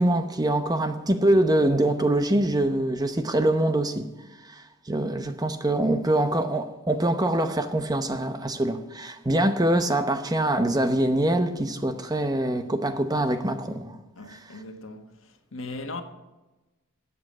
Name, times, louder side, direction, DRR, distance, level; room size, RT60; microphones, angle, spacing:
voice 1, 0.0-4.0 4.5-14.0 14.3-14.4, right 1 dB, 20° right, 0.7 m, -24 dB
voice 2, 14.2-15.1 15.5-16.0, left 2 dB, 75° left, 1.4 m, -37 dB
12.5 x 8.5 x 6.5 m
head